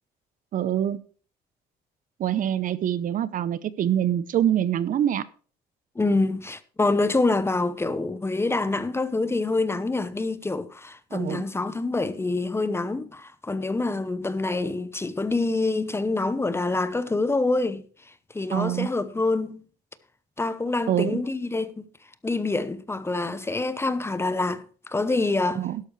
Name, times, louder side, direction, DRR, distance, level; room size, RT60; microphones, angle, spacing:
voice 1, 0.5-1.0 2.2-5.2 11.1-11.4 18.5-18.9 20.9-21.2 25.5-25.8, right 10 dB, 55° right, 0.7 m, -25 dB
voice 2, 6.0-17.8 18.3-19.6 20.4-21.9 22.2-25.6, left 3 dB, 15° left, 0.9 m, -26 dB
12.5 x 11.5 x 3.2 m
cardioid pair, 110°, 17 cm